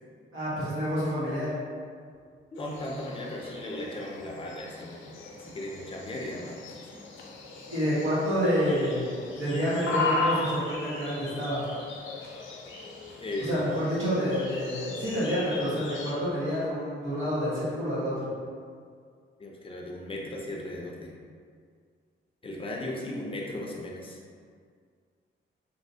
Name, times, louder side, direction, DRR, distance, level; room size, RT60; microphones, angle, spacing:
voice 1, 0.3-1.5 7.7-9.1 9.4-11.6 13.4-18.3, equal, 85° right, -10 dB, 1.5 m, -28 dB
sound 1, 2.5-16.1, left 3 dB, 75° left, 0.5 m, -37 dB
voice 2, 2.5-5.0 5.3-6.6 13.2-13.7 19.4-21.1 22.4-24.2, left 1 dB, 25° left, -2 dB, 0.4 m, -36 dB
3.2 x 2.8 x 2.7 m, 2.1 s
cardioid pair, 115°, 20 cm